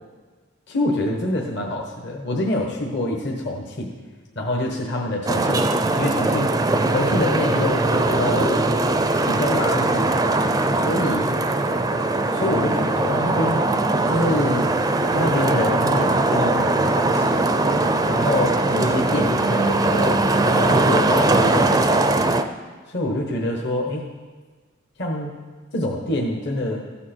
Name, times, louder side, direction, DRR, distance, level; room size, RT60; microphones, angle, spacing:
voice 1, 0.7-3.9 4.3-6.5 6.9-8.6 9.3-10.1 10.7-11.3 11.9-12.0 12.3-13.6 14.1-14.7 15.1-17.4 18.1-22.0 22.9-24.1 25.0-25.4 25.7-26.8, left 1 dB, 55° left, 0 dB, 1.1 m, -26 dB
Traffic noise roadway noise, 5.3-22.4, right 2 dB, 20° right, 0.4 m, -20 dB
14.5 x 7.4 x 4.4 m, 1.4 s
head